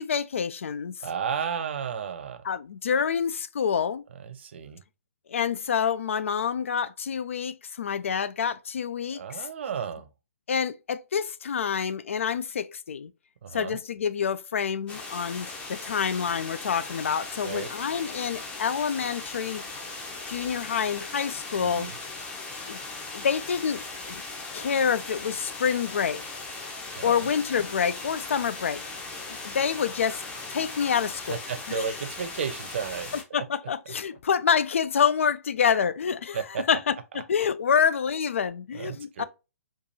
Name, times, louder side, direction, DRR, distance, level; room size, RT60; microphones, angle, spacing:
voice 1, 0.0-0.9 2.4-4.0 5.3-9.5 10.5-13.1 13.5-19.6 20.3-21.9 22.7-22.8 23.1-23.8 24.1-24.2 24.5-26.4 27.0-28.8 29.1-30.2 30.5-31.4 31.7-31.9 33.3-36.4 36.7-39.2, left 7 dB, 55° left, 0.4 m, -27 dB
voice 2, 1.0-2.4 4.2-4.8 9.1-10.1 13.4-13.8 17.4-17.7 21.6-22.0 26.9-27.2 31.3-33.1 36.3-36.6 37.1-37.2 38.7-39.2, right 7 dB, 45° right, 0.6 m, -33 dB
sound 1, 14.9-33.2, left 3 dB, 15° left, 0.7 m, -38 dB
4.5 x 2.4 x 2.7 m
figure-of-eight pair, 130°, 8 cm